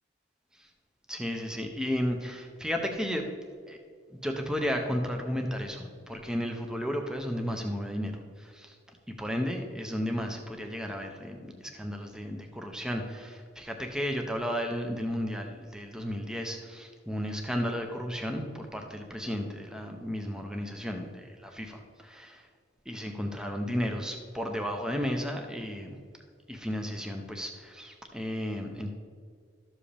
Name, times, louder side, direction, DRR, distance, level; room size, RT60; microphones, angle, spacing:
voice 1, 1.1-3.3 3.7-3.8 4.2-8.8 9.1-22.5 22.9-26.0 26.5-28.9, equal, 5° right, 3 dB, 0.7 m, -33 dB
12.5 x 7.6 x 3.4 m, 2.1 s
head